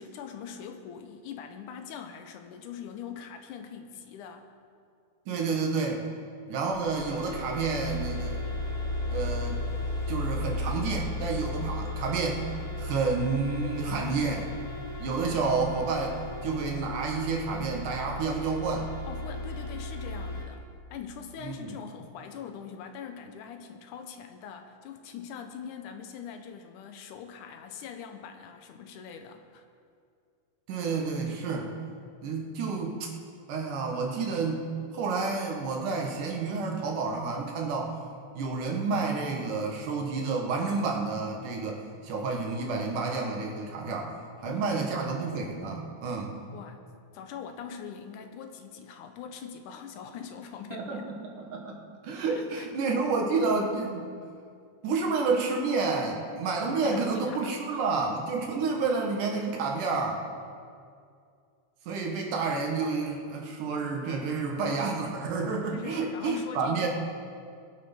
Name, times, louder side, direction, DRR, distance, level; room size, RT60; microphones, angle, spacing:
voice 1, 0.0-4.5 19.1-29.6 44.4-44.8 46.5-46.8 47.1-51.1 52.3-52.7 56.7-57.8 65.7-66.9, left 7 dB, 80° left, 6 dB, 2.4 m, -42 dB
voice 2, 5.3-6.0 6.5-8.4 9.1-9.6 10.1-12.4 12.8-14.5 15.0-16.2 16.4-18.9 21.4-21.8 30.7-31.7 32.2-33.1 33.5-34.7 34.9-38.0 38.3-44.1 44.4-46.4 50.7-51.8 52.0-54.1 54.8-60.2 61.9-66.9, right 4 dB, 80° right, 0 dB, 3.1 m, -30 dB
sound 1, 6.7-20.4, left 2 dB, 45° left, 5.1 m, -35 dB
21.5 x 7.7 x 5.5 m, 2.3 s
omnidirectional pair, 3.6 m